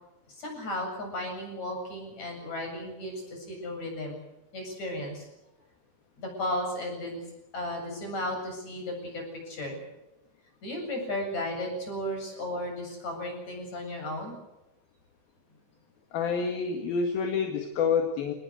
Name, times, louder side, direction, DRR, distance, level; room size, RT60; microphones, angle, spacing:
voice 1, 0.3-4.2 4.5-5.3 6.2-7.3 7.5-9.8 10.6-14.3, left 1 dB, 35° left, 3 dB, 8.9 m, -34 dB
voice 2, 16.1-18.3, left 5 dB, 60° left, 4 dB, 3.3 m, -28 dB
25.5 x 20.0 x 8.0 m, 0.95 s
omnidirectional pair, 5.7 m